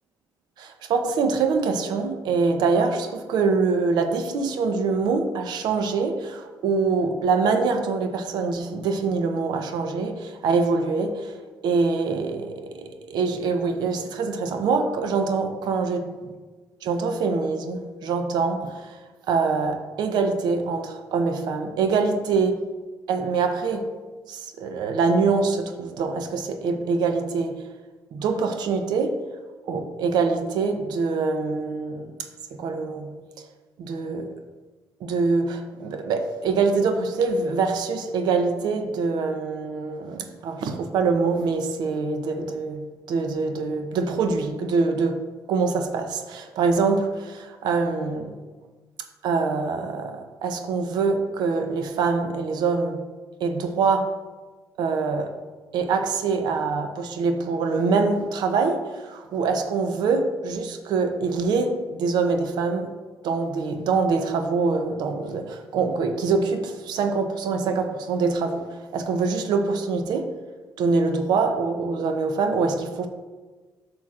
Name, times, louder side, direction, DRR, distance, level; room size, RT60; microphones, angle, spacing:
voice 1, 0.6-11.4 11.6-16.1 16.8-19.0 19.3-22.6 23.1-23.9 24.3-27.6 28.1-29.2 29.7-32.1 32.5-33.1 33.9-34.3 35.0-45.2 45.5-48.4 49.2-53.0 53.4-54.1 54.8-55.3 55.7-62.9 63.2-70.3 70.8-73.1, right 4 dB, 80° right, 6 dB, 0.6 m, -24 dB
8.4 x 6.1 x 2.4 m, 1.3 s
cardioid pair, 105°, 7 cm